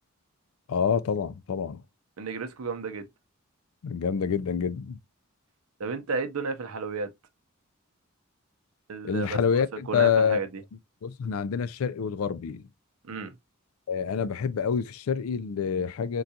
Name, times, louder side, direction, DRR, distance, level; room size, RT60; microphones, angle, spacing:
voice 1, 0.7-1.8 3.8-5.0 9.0-10.4 11.0-12.6 13.9-16.2, left 6 dB, 80° left, 0.4 m, -27 dB
voice 2, 2.2-3.1 5.8-7.1 8.9-9.6 9.9-10.5 13.1-13.3, right 4 dB, 85° right, 0.6 m, -32 dB
3.7 x 2.3 x 2.7 m
head